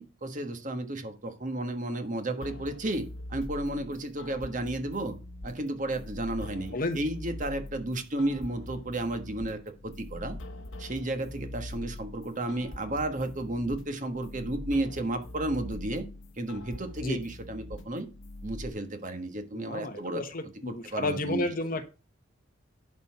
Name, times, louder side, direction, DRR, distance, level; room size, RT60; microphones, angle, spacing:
voice 1, 0.0-5.2 5.4-10.4 10.8-16.1 16.4-18.1 18.4-20.2 20.7-21.5, right 1 dB, 40° right, 1.4 m, -33 dB
sound 1, 2.4-18.7, left 1 dB, 80° left, 1.1 m, -43 dB
voice 2, 19.5-21.9, left 2 dB, 45° left, 1.1 m, -32 dB
11.5 x 4.4 x 5.8 m
head